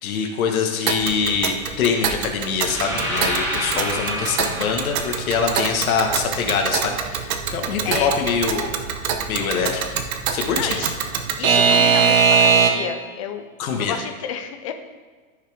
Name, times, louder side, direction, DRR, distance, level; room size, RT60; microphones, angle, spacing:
voice 1, 0.0-8.7 9.3-9.8 10.3-10.8 13.6-14.0, left 5 dB, 80° left, 3 dB, 1.6 m, -24 dB
Alarm / Clock, 0.9-13.0, right 6 dB, 75° right, 1.1 m, -22 dB
sound 1, 2.5-6.5, equal, 5° right, 1.3 m, -29 dB
voice 2, 7.8-8.2 10.5-11.0 11.4-13.5 13.8-14.7, left 8 dB, 25° left, 7 dB, 0.4 m, -30 dB
14.0 x 5.7 x 3.5 m, 1.4 s
supercardioid pair, 160°, 42 cm